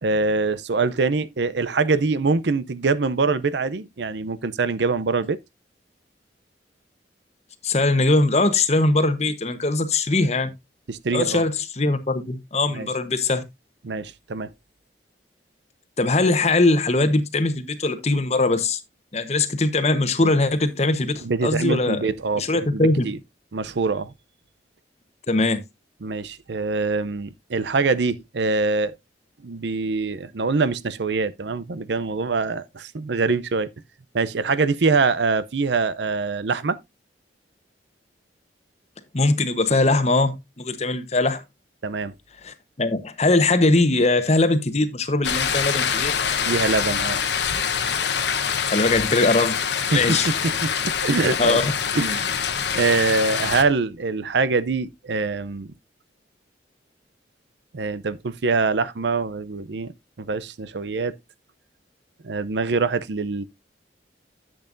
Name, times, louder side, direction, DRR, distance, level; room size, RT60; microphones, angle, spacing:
voice 1, 0.0-5.4 10.9-11.4 12.7-12.9 13.8-14.5 21.2-23.2 23.5-24.1 26.0-28.9 29.4-33.7 34.1-36.8 41.8-42.1 46.4-47.2 49.9-50.2 50.6-51.6 51.9-52.3 52.7-55.7 57.7-61.2 62.2-63.4, right 4 dB, 70° right, 0.6 m, -24 dB
voice 2, 7.6-10.5 11.1-13.4 16.0-18.8 19.1-22.0 22.4-23.1 25.3-25.6 39.1-41.4 42.4-46.1 48.6-49.6 49.9-50.3 51.4-51.7, left 2 dB, 35° left, 1.0 m, -21 dB
sound 1, 45.2-53.6, left 7 dB, 70° left, 1.0 m, -25 dB
11.0 x 7.8 x 2.6 m
head